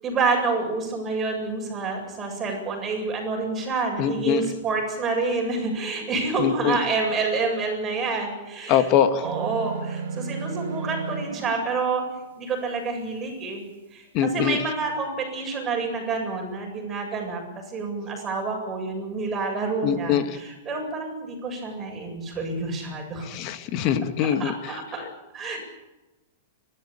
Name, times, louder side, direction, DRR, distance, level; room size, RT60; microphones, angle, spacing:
voice 1, 0.0-8.9 9.2-12.0 12.3-13.6 13.9-17.4 17.7-23.3 24.2-25.0 25.3-25.6, right 4 dB, 20° right, 1 dB, 7.8 m, -28 dB
voice 2, 4.0-4.5 6.4-6.8 8.7-9.3 14.1-14.6 19.8-20.4 23.2-24.8, left 9 dB, 35° left, 10 dB, 1.8 m, -23 dB
sound 1, 9.2-11.5, right 5 dB, 70° right, 3.1 m, -32 dB
30.0 x 13.0 x 8.9 m, 1.0 s
hypercardioid pair, 150°, 0 cm